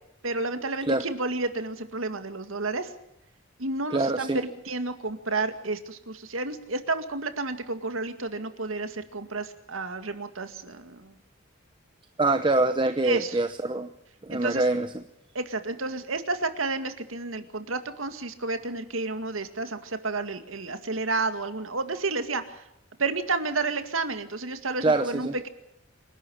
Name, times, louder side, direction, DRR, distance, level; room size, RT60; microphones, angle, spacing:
voice 1, 0.2-2.9 3.6-11.2 13.0-13.4 14.3-14.7 15.3-22.7 23.0-25.5, right 3 dB, 85° right, 8 dB, 2.1 m, -31 dB
voice 2, 3.9-4.4 12.2-13.9 14.2-15.0 24.8-25.3, right 2 dB, 25° right, 9 dB, 0.9 m, -24 dB
27.0 x 12.0 x 8.6 m, 0.84 s
head